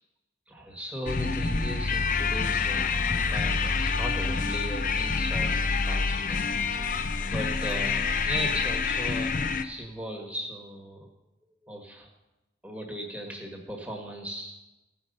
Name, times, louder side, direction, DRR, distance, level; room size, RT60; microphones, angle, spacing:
voice 1, 0.5-6.9 7.3-9.3 9.6-11.1 11.5-12.1 12.6-14.6, equal, 5° right, 1 dB, 1.5 m, -38 dB
sound 1, 1.1-9.6, left 4 dB, 45° left, 0.6 m, -27 dB
15.5 x 5.5 x 6.6 m, 1.0 s
head